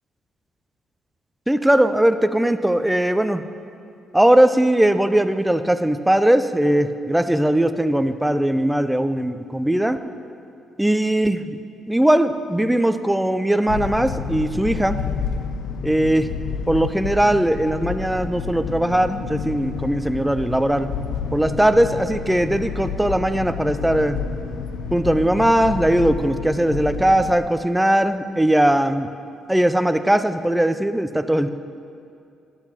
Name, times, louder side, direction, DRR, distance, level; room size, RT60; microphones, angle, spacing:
voice 1, 1.5-3.4 4.1-10.0 10.8-11.6 11.9-15.0 15.8-16.3 16.7-20.9 21.3-24.2 24.9-29.1 29.5-31.5, right 1 dB, 5° right, 10 dB, 0.4 m, -19 dB
sound 1, 13.7-27.4, left 6 dB, 80° left, 0.4 m, -30 dB
11.5 x 7.9 x 2.9 m, 2.6 s
cardioid pair, 90°, 0 cm